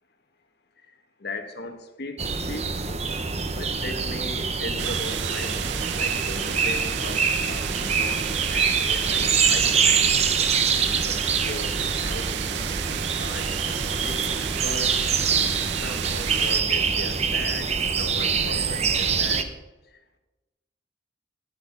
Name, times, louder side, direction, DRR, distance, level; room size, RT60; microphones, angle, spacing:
voice 1, 0.8-10.0 10.8-13.5 13.9-15.0 15.8-19.5 19.9-20.2, left 2 dB, 60° left, 6 dB, 1.5 m, -39 dB
sound 1, 2.2-19.4, right 5 dB, 35° right, 0.8 m, -25 dB
sound 2, 4.8-16.6, right 13 dB, 65° right, 0.3 m, -32 dB
10.5 x 10.0 x 5.4 m, 1.1 s
head